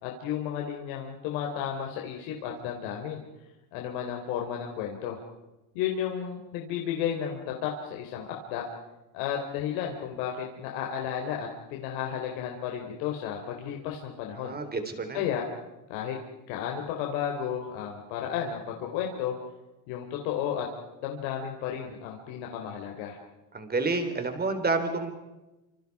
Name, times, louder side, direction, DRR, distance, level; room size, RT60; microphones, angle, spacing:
voice 1, 0.0-3.2 3.7-5.2 5.7-8.7 9.1-14.5 15.1-15.4 15.9-16.2 16.5-19.3 19.9-20.7 21.0-23.2, left 9 dB, 75° left, 1 dB, 3.8 m, -33 dB
voice 2, 14.4-15.2 23.5-25.1, right 3 dB, 20° right, 7 dB, 3.8 m, -29 dB
27.5 x 27.0 x 4.8 m, 1.0 s
cardioid pair, 135°, 49 cm